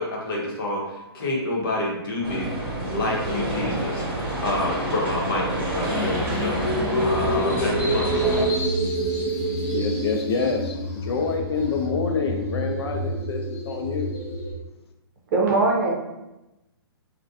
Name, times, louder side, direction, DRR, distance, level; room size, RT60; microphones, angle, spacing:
voice 1, 0.0-2.5 2.9-8.1, left 2 dB, 60° left, -2 dB, 0.9 m, -28 dB
sound 1, 2.2-8.4, right 1 dB, 10° right, 1.2 m, -28 dB
sound 2, 5.9-14.5, equal, 25° left, 0.6 m, -27 dB
voice 2, 9.7-14.1, left 4 dB, 80° left, 3 dB, 0.5 m, -27 dB
voice 3, 15.3-15.9, right 3 dB, 45° right, -1 dB, 0.6 m, -20 dB
2.4 x 2.1 x 2.6 m, 0.97 s
hypercardioid pair, 150°, 14 cm